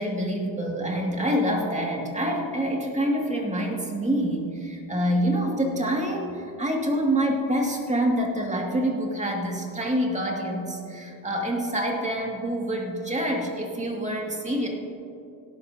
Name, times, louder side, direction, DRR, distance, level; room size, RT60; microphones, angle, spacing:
voice 1, 0.0-14.7, equal, 15° right, 0 dB, 2.2 m, -26 dB
17.5 x 11.0 x 2.8 m, 2.7 s
cardioid pair, 90°, 48 cm